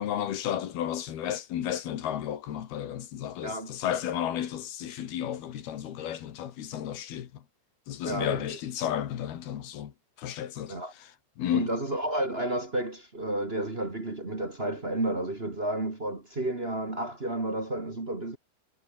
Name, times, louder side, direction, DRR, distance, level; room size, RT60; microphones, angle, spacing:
voice 1, 0.0-7.4 7.9-9.9 10.2-11.1 11.4-11.7, left 10 dB, 65° left, 3.7 m, -33 dB
voice 2, 3.4-3.7 8.0-8.4 10.7-10.9 11.5-18.4, right 1 dB, 25° right, 1.2 m, -31 dB
omnidirectional pair, 5.1 m